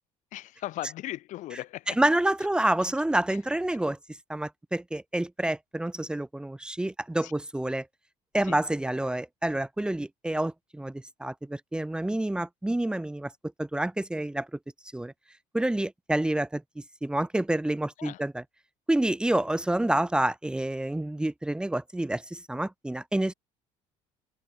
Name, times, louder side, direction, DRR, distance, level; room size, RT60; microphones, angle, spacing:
voice 1, 0.3-2.0 7.2-7.3 8.4-8.6 18.0-18.2, left 15 dB, 70° left, 7.6 m, -38 dB
voice 2, 2.0-4.0 4.3-7.9 8.3-13.3 13.6-14.5 14.9-15.1 15.5-16.6 17.0-18.4 18.9-23.3, right 1 dB, 5° right, 2.0 m, -28 dB
cardioid pair, 135°, 13 cm